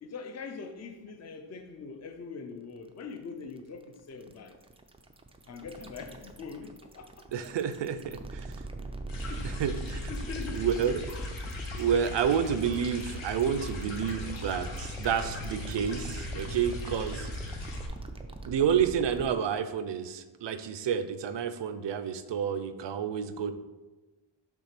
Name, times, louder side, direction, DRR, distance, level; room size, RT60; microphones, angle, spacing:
voice 1, 0.0-4.6 5.5-7.3 9.3-9.6 10.0-11.1, left 5 dB, 35° left, 7 dB, 0.5 m, -43 dB
sound 1, 2.7-19.3, right 2 dB, 15° right, 0.3 m, -43 dB
voice 2, 7.3-8.5 9.4-10.1 10.5-11.0 11.7-17.3 18.5-23.5, right 8 dB, 60° right, 11 dB, 0.5 m, -29 dB
sound 2, 9.1-17.9, left 1 dB, 70° left, 1.3 m, -38 dB
6.0 x 3.6 x 5.9 m, 1.2 s
wide cardioid pair, 150°, 48 cm